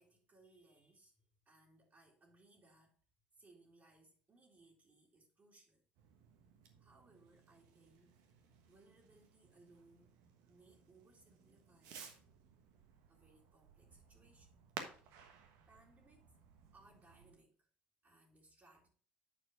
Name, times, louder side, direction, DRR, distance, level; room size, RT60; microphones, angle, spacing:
voice 1, 0.0-3.0 3.4-5.8 6.8-8.2 8.7-10.2 10.5-12.1 13.1-14.6 15.7-16.2 16.7-17.7 18.0-18.9, right 2 dB, 35° right, 2.4 m, -67 dB
Fireworks, 6.0-17.3, right 6 dB, 70° right, 1.3 m, -57 dB
8.9 x 4.5 x 5.0 m
hypercardioid pair, 60°, 5 cm